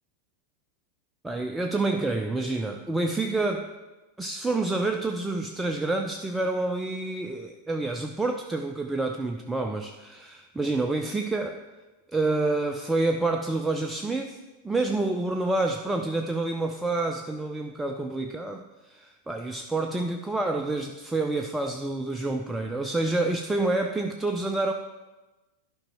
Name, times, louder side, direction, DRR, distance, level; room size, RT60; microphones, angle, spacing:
voice 1, 1.2-3.7 4.2-11.6 12.1-24.7, right 2 dB, 5° right, 4 dB, 0.5 m, -28 dB
11.5 x 5.0 x 4.6 m, 1.2 s
figure-of-eight pair, 90°, 0 cm